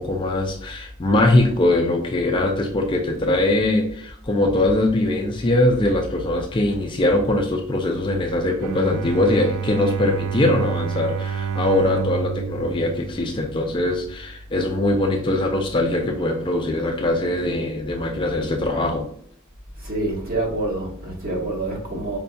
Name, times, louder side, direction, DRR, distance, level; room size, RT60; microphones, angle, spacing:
voice 1, 0.0-19.1, left 2 dB, 20° left, 0.4 m, -21 dB
voice 2, 8.6-9.0 19.8-22.2, right 2 dB, 40° right, 1.2 m, -27 dB
Bowed string instrument, 8.6-13.9, right 7 dB, 65° right, 0.3 m, -28 dB
5.1 x 2.7 x 2.2 m
head